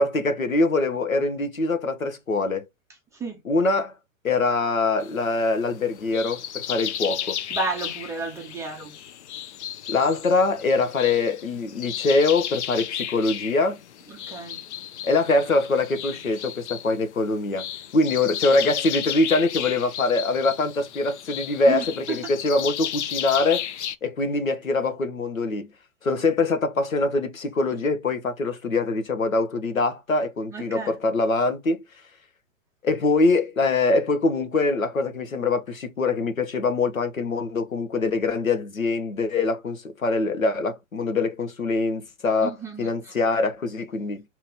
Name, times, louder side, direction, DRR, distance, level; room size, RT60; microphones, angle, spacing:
voice 1, 0.0-2.7 3.4-4.0 4.2-7.4 9.9-13.8 15.0-23.7 24.0-25.7 26.0-31.8 32.8-44.2, left 3 dB, 85° left, 0.9 m, -23 dB
sound 1, 5.0-24.0, left 10 dB, 60° left, 0.5 m, -34 dB
voice 2, 7.5-8.9 14.1-14.6 21.7-22.3 30.5-31.0 42.4-43.1, right 4 dB, 10° right, 0.4 m, -32 dB
2.9 x 2.9 x 3.5 m
figure-of-eight pair, 105°, 40 cm